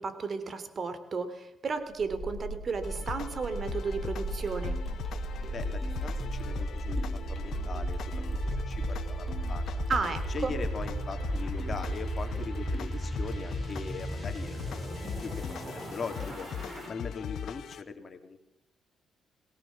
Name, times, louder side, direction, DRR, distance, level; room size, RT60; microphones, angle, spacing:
voice 1, 0.0-4.8 9.9-10.5, right 4 dB, 40° right, 10 dB, 3.2 m, -33 dB
sound 1, 1.9-16.9, right 2 dB, 25° right, 7.2 m, -35 dB
sound 2, 2.8-17.8, left 9 dB, 70° left, 1.0 m, -40 dB
sound 3, 4.3-16.6, left 3 dB, 10° left, 6.9 m, -48 dB
voice 2, 5.5-9.8 10.3-16.5 16.9-18.4, left 5 dB, 40° left, 7 dB, 3.2 m, -41 dB
22.5 x 19.0 x 7.4 m, 0.78 s
cardioid pair, 90°, 0 cm